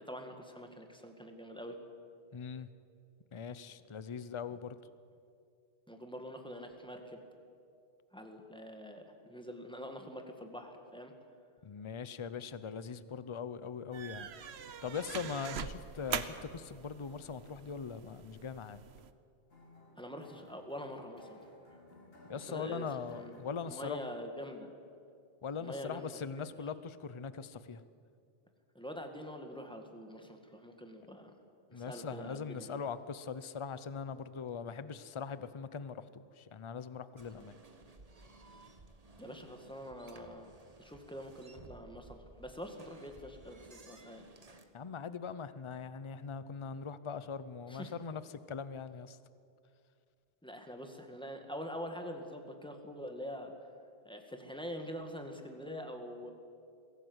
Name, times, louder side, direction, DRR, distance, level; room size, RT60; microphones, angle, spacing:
voice 1, 0.0-1.8 5.9-7.2 8.1-11.1 20.0-21.4 22.3-23.3 23.7-24.7 25.6-26.2 28.7-31.3 31.7-32.8 39.2-40.5 40.8-44.2 47.7-47.9 50.4-53.5 54.0-56.3, equal, 5° left, 4 dB, 2.1 m, -45 dB
voice 2, 2.3-2.7 3.3-4.8 11.6-18.8 22.3-24.1 25.4-27.8 31.7-37.5 44.7-48.2 48.5-49.2, left 6 dB, 35° left, 14 dB, 0.7 m, -41 dB
sound 1, 13.9-19.1, right 7 dB, 75° right, 1.1 m, -43 dB
sound 2, 19.5-24.0, left 1 dB, 65° left, 2.9 m, -58 dB
sound 3, 37.2-44.7, right 2 dB, 35° right, 1.4 m, -57 dB
23.0 x 16.5 x 8.1 m, 2.4 s
omnidirectional pair, 1.1 m